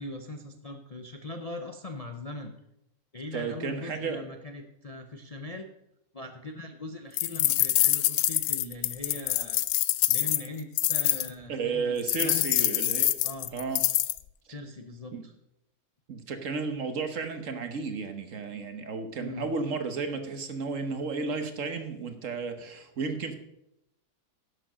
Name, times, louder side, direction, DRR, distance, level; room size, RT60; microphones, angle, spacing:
voice 1, 0.0-2.5 3.1-5.7 6.1-9.6 10.1-12.7 13.2-13.5 14.5-15.3 19.2-19.5, left 2 dB, 35° left, 4 dB, 0.6 m, -40 dB
voice 2, 3.3-4.2 11.5-13.1 13.5-13.8 15.1-15.2 16.1-23.4, right 4 dB, 55° right, 8 dB, 1.5 m, -33 dB
sound 1, 7.2-11.3 12.1-14.2, left 14 dB, 80° left, 1.1 m, -25 dB
11.0 x 7.4 x 6.3 m, 0.82 s
omnidirectional pair, 1.6 m